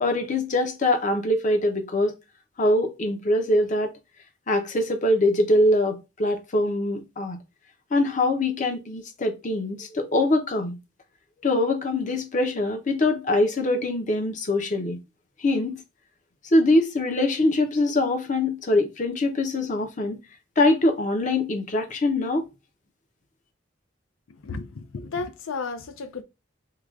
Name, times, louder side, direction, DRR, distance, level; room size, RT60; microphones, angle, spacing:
voice 1, 0.0-2.1 2.6-3.9 4.5-7.4 7.9-10.8 11.4-15.0 15.4-15.8 16.4-20.2 20.6-22.4, left 1 dB, 40° left, 0.6 m, -23 dB
voice 2, 24.4-26.2, left 4 dB, 85° left, 0.5 m, -33 dB
4.7 x 2.2 x 2.4 m
head